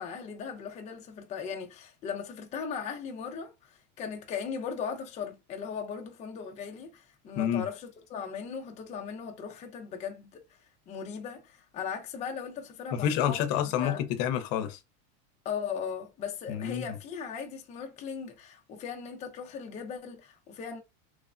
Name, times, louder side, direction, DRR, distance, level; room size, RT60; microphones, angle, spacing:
voice 1, 0.0-10.4 10.9-13.5 13.8-14.0 15.4-20.8, left 6 dB, 20° left, 0.4 m, -38 dB
voice 2, 12.9-14.8 16.5-17.0, left 10 dB, 55° left, 0.7 m, -28 dB
3.2 x 2.0 x 2.4 m
supercardioid pair, 135°, 43 cm